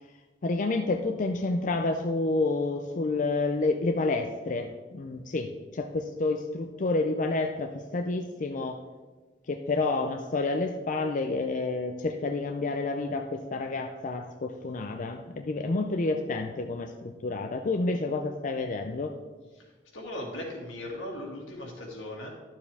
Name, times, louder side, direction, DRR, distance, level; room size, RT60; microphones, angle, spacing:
voice 1, 0.4-8.8 9.5-19.1, left 3 dB, 45° left, 4 dB, 0.5 m, -29 dB
voice 2, 19.9-22.3, left 1 dB, 85° left, -1 dB, 2.3 m, -38 dB
12.0 x 7.1 x 3.5 m, 1.3 s
head